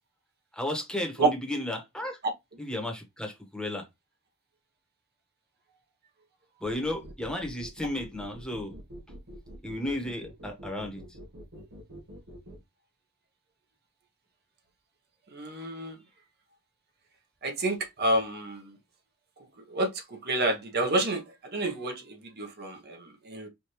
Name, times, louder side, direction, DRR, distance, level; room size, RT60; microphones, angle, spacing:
voice 1, 0.5-2.2 2.6-3.9 6.6-8.7 9.6-11.0, left 1 dB, 5° left, 1.1 m, -33 dB
sound 1, 6.8-12.6, equal, 90° right, 1.7 m, -46 dB
voice 2, 15.3-16.0 17.4-18.8 19.7-23.5, right 2 dB, 50° right, 1.0 m, -29 dB
4.9 x 2.6 x 3.1 m
head